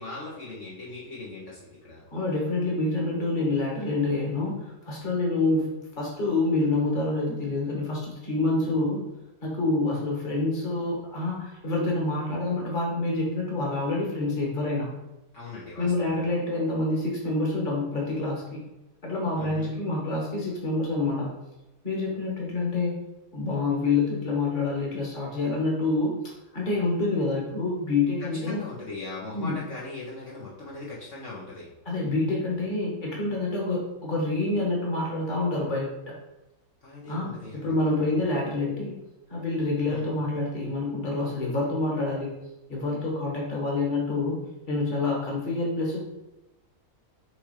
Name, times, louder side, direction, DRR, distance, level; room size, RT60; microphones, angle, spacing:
voice 1, 0.0-2.0 15.3-16.1 19.4-19.7 28.3-31.7 36.8-38.0 39.9-40.1, left 2 dB, 55° left, -7 dB, 1.7 m, -39 dB
voice 2, 2.1-9.0 9.4-14.9 15.8-18.6 19.0-21.3 21.8-22.9 23.3-28.6 29.3-29.6 31.9-36.1 37.1-39.0 39.3-42.4 42.7-44.4 44.7-46.0, left 2 dB, 35° left, -2 dB, 1.8 m, -27 dB
6.8 x 3.6 x 5.0 m, 0.99 s
omnidirectional pair, 1.5 m